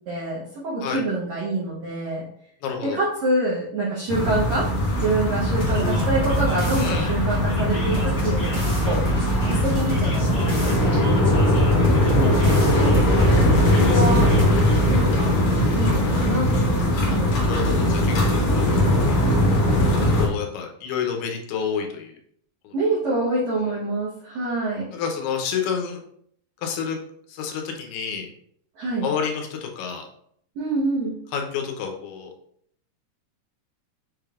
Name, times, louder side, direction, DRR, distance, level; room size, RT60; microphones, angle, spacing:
voice 1, 0.1-2.2 2.8-4.7 5.0-11.1 12.0-14.3 14.9-15.4 15.7-17.4 22.7-24.9 28.8-29.1 30.5-31.1, right 2 dB, 80° right, -6 dB, 1.6 m, -26 dB
voice 2, 2.6-3.0 6.8-7.1 17.1-17.2 17.5-18.8 20.1-22.1 22.6-22.7 24.9-26.0 26.6-27.0 27.3-28.3 29.0-30.0 31.3-32.3, left 7 dB, 85° left, 2 dB, 2.8 m, -29 dB
sound 1, 4.1-20.3, left 1 dB, 70° left, 1.7 m, -20 dB
sound 2, 5.6-14.4, equal, 45° left, 0.7 m, -30 dB
6.6 x 3.3 x 2.4 m, 0.66 s
omnidirectional pair, 4.4 m